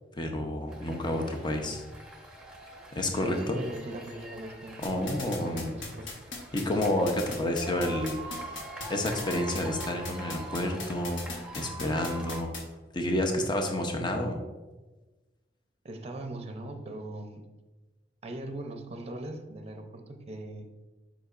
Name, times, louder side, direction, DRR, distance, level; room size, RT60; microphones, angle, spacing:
voice 1, 0.2-1.8 2.9-3.6 4.8-5.7 6.5-8.5 8.9-12.5 12.9-14.4, left 1 dB, 25° left, 3 dB, 0.7 m, -30 dB
sound 1, 0.7-12.4, right 2 dB, 5° right, 1.0 m, -44 dB
voice 2, 3.1-6.1 15.8-17.5 18.2-20.7, right 1 dB, 35° right, 6 dB, 0.6 m, -40 dB
sound 2, 4.8-12.6, left 3 dB, 90° left, 1.3 m, -38 dB
8.2 x 5.1 x 2.5 m, 1.2 s
head